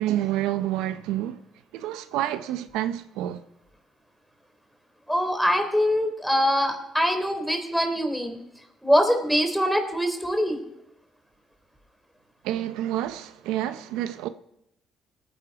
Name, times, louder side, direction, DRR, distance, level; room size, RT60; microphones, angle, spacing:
voice 1, 0.0-1.4 1.7-3.4 12.4-14.3, right 13 dB, 85° right, 0.6 m, -28 dB
voice 2, 5.1-8.4 8.8-10.6, equal, ahead, 3.5 m, -23 dB
19.0 x 9.9 x 4.8 m
supercardioid pair, 75°, 0 cm